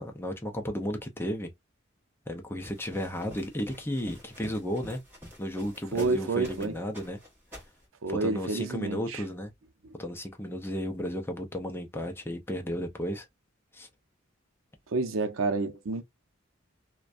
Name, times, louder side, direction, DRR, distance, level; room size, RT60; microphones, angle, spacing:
voice 1, 0.0-1.5 2.3-5.0 5.4-7.2 8.1-9.5 10.0-13.3 13.7-13.9, equal, 10° left, 0.5 m, -34 dB
sound 1, 2.6-6.7 6.9-7.8, equal, 10° right, 1.2 m, -48 dB
voice 2, 5.9-6.7 8.0-9.2 14.9-16.0, right 3 dB, 85° right, 0.6 m, -29 dB
2.5 x 2.2 x 2.4 m
head